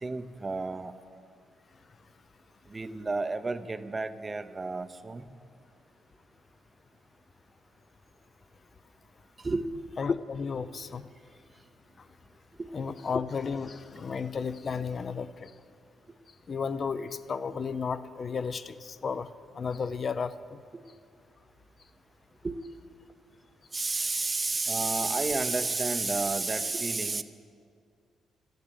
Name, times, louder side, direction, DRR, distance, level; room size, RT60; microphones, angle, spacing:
voice 1, 0.0-0.9 2.7-5.3 9.4-9.7 12.6-12.7 22.4-22.5 23.7-27.2, right 3 dB, 25° right, 11 dB, 0.7 m, -31 dB
voice 2, 10.0-11.0 12.7-15.5 16.5-19.3 19.5-20.6, left 5 dB, 40° left, 15 dB, 0.5 m, -33 dB
13.5 x 10.5 x 8.2 m, 2.2 s
cardioid pair, 115°, 0 cm